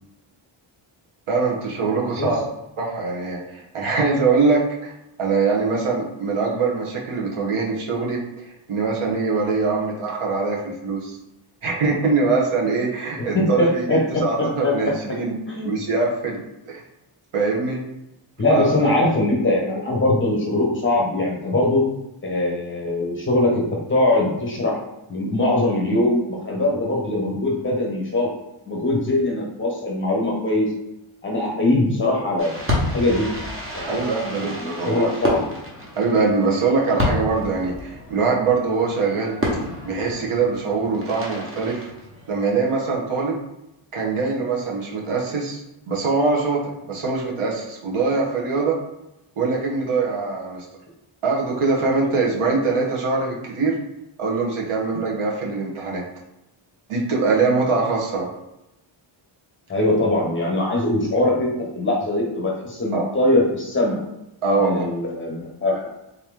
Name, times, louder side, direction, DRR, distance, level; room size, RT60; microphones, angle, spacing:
voice 1, 1.3-2.4 2.8-4.9 5.2-11.2 11.6-15.3 15.6-16.4 16.7-16.8 17.3-17.8 18.5-19.0 33.8-35.1 35.9-39.3 39.8-41.9 42.3-43.4 43.9-48.8 49.4-50.7 51.2-53.8 54.2-56.0 56.9-58.3 62.9-63.1 64.4-64.8, right 4 dB, 80° right, -2 dB, 1.2 m, -23 dB
voice 2, 13.3-14.7 15.5-15.8 18.4-21.8 22.2-24.8 25.1-28.3 28.7-30.7 31.2-32.7 32.9-33.3 33.7-34.1 34.6-35.4 59.7-64.0 64.6-65.8, left 2 dB, 25° left, -2 dB, 1.0 m, -21 dB
Fireworks, 32.4-42.6, left 1 dB, 25° right, 1.0 m, -30 dB
3.9 x 2.9 x 3.6 m, 0.89 s
wide cardioid pair, 155°, 50 cm